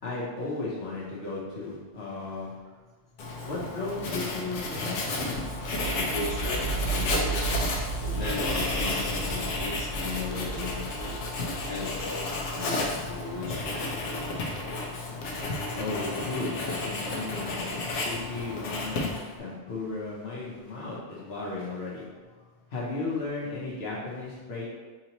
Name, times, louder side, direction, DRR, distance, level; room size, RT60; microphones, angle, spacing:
voice 1, 0.0-2.5 3.5-5.1 6.7-7.2 15.7-22.1 22.7-24.6, left 3 dB, 65° left, -6 dB, 1.0 m, -35 dB
Writing, 3.2-19.4, left 2 dB, 90° left, 1.0 m, -32 dB
sound 1, 5.3-16.0, right 4 dB, 70° right, 1.0 m, -36 dB
voice 2, 5.9-7.3 8.0-11.2 11.7-12.3 12.5-12.7 13.0-14.8, left 3 dB, 25° left, -7 dB, 0.9 m, -37 dB
4.1 x 2.9 x 2.8 m, 1.3 s
omnidirectional pair, 1.2 m